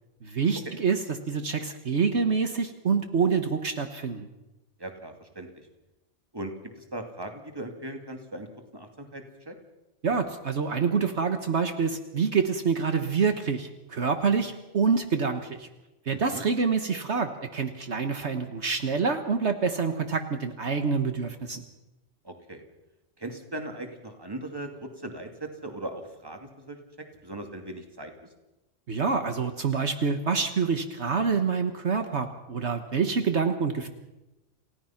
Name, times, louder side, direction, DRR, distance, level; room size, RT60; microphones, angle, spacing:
voice 1, 0.2-4.3 10.0-15.7 16.1-21.6 28.9-33.9, right 5 dB, 60° right, 7 dB, 1.6 m, -27 dB
voice 2, 4.8-5.7 6.3-8.5 8.7-9.5 16.1-16.4 22.2-22.6 23.2-26.8 27.2-28.3, right 1 dB, 20° right, 4 dB, 2.4 m, -39 dB
29.0 x 17.0 x 5.9 m, 1.0 s
omnidirectional pair, 1.3 m